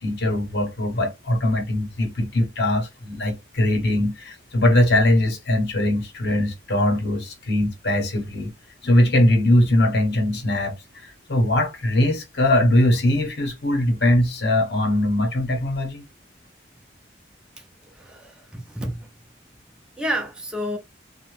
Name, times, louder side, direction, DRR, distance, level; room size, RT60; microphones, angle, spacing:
voice 1, 0.0-8.5 8.8-16.0, left 1 dB, 65° left, 0.9 m, -21 dB
voice 2, 17.9-19.0 20.0-20.8, equal, 5° right, 0.5 m, -30 dB
2.6 x 2.1 x 3.1 m
head